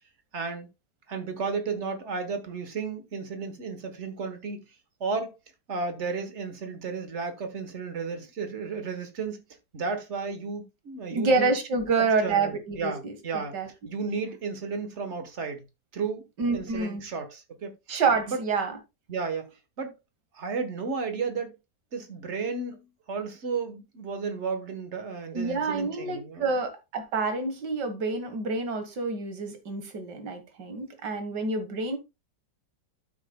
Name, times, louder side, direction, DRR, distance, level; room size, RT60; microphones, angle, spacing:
voice 1, 0.3-0.7 1.1-4.6 5.0-5.3 5.7-9.4 9.7-11.5 12.0-13.6 13.8-15.6 15.9-16.3 16.5-17.7 18.3-18.4 19.1-19.9 20.3-21.5 21.9-26.6, right 4 dB, 45° right, 1.4 m, -33 dB
voice 2, 11.1-13.7 16.4-17.0 17.9-18.8 25.3-32.0, right 4 dB, 80° right, 2.1 m, -28 dB
12.0 x 6.5 x 2.2 m
omnidirectional pair, 1.8 m